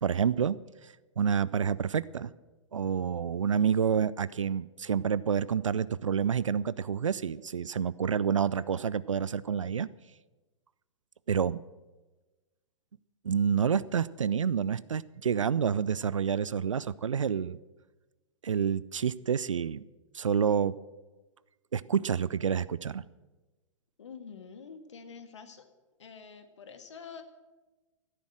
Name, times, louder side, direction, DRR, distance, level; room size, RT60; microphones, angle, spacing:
voice 1, 0.0-2.3 2.7-9.9 11.3-11.6 13.2-17.6 18.4-19.8 20.1-20.7 21.7-23.0, right 7 dB, 70° right, 19 dB, 0.4 m, -28 dB
voice 2, 24.0-25.7 26.0-27.2, left 6 dB, 65° left, 8 dB, 1.9 m, -47 dB
13.5 x 11.0 x 7.7 m, 1.2 s
figure-of-eight pair, 110°, 17 cm